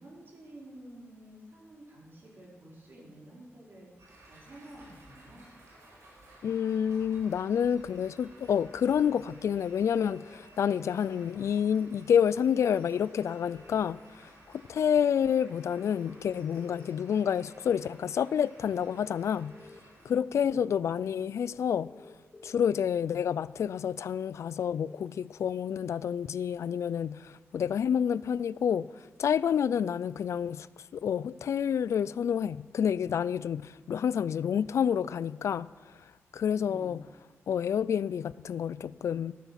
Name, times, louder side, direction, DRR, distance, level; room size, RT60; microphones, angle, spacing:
voice 1, 0.0-3.9 4.3-5.4 20.1-20.7 36.4-37.0, right 1 dB, 45° right, 4.5 m, -50 dB
sound 1, 4.0-20.1, right 1 dB, 85° right, 5.0 m, -56 dB
voice 2, 6.4-19.5 20.0-21.9 22.4-37.0 37.5-39.3, left 8 dB, 80° left, 0.3 m, -29 dB
sound 2, 10.0-11.0 13.0-13.9 15.9-16.9 18.8-19.8 21.7-22.7 24.7-25.1, left 3 dB, 25° left, 0.7 m, -52 dB
14.0 x 12.5 x 5.7 m
wide cardioid pair, 135°, 5 cm